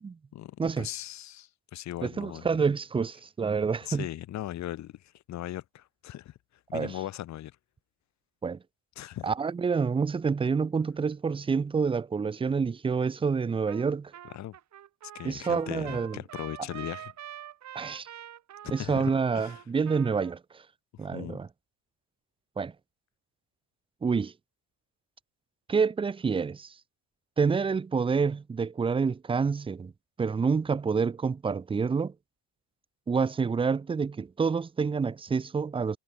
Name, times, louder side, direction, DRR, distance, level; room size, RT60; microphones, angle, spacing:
voice 1, 0.3-2.5 3.9-6.4 6.7-7.5 9.0-9.3 14.3-14.6 15.1-17.1 18.6-19.6 20.9-21.4, left 13 dB, 45° left, 0.5 m, -39 dB
voice 2, 2.0-4.1 6.7-6.9 8.4-8.6 9.2-14.1 15.2-16.2 17.7-18.1 18.7-20.6 21.0-21.5 22.6-22.7 24.0-24.3 25.7-26.7 27.4-29.9 30.2-32.1 33.1-36.0, right 5 dB, 15° right, 0.3 m, -28 dB
Trumpet, 13.7-13.9 14.1-20.3, right 11 dB, 40° right, 0.8 m, -45 dB
cardioid pair, 135°, 42 cm